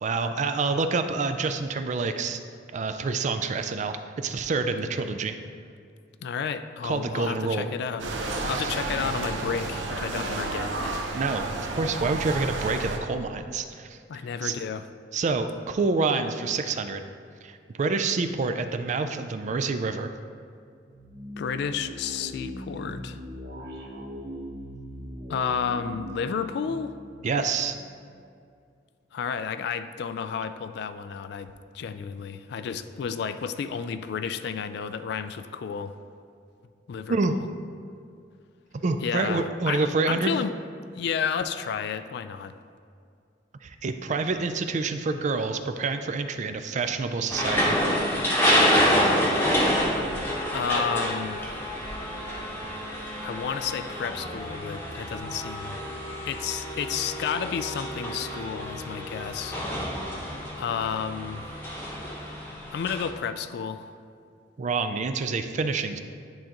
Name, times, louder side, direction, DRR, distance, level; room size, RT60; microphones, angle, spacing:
voice 1, 0.0-2.4 2.7-5.3 6.8-7.7 8.4-8.8 11.1-14.0 14.4-14.6 15.1-17.0 17.4-20.1 27.2-27.8 37.1-37.4 38.8-40.3 43.6-47.8 64.6-66.0, right 4 dB, 40° right, 8 dB, 0.4 m, -27 dB
voice 2, 6.2-11.0 14.1-14.9 21.4-23.2 25.3-27.0 29.1-31.5 31.7-35.9 36.9-37.5 39.0-40.5 40.9-42.5 50.5-51.4 53.2-55.8 56.3-59.6 60.6-61.5 62.7-63.9, left 6 dB, 65° left, 11 dB, 0.3 m, -31 dB
sound 1, 8.0-13.0, right 2 dB, 85° right, 0.7 m, -31 dB
sound 2, 20.9-28.1, equal, 60° right, 1.0 m, -40 dB
sound 3, 47.3-63.1, equal, 10° left, 0.9 m, -28 dB
10.5 x 3.8 x 2.9 m, 2.3 s
head